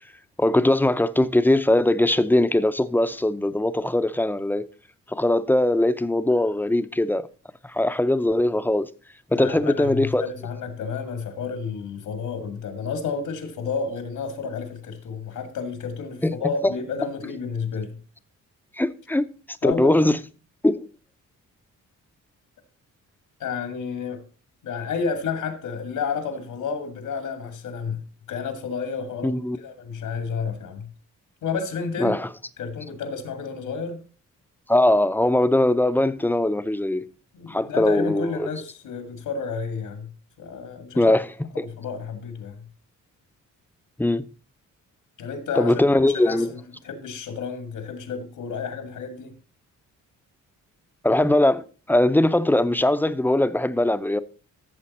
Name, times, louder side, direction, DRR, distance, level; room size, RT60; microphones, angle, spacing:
voice 1, 0.4-4.6 5.1-7.3 7.6-8.9 9.3-10.2 16.2-16.4 16.6-16.7 18.8-19.3 19.6-20.2 20.6-20.9 29.2-29.6 32.0-32.3 34.7-37.0 37.5-38.5 41.0-41.7 44.0-44.3 45.6-46.5 51.0-54.2, left 1 dB, 5° left, 0.6 m, -21 dB
voice 2, 9.3-18.0 19.6-20.1 23.4-24.2 24.6-28.0 28.3-30.9 31.4-32.2 32.6-34.0 37.3-40.1 40.4-41.1 41.5-42.6 45.2-45.7 46.2-49.3, left 5 dB, 85° left, 2.1 m, -31 dB
14.0 x 6.9 x 4.2 m
cardioid pair, 100°, 32 cm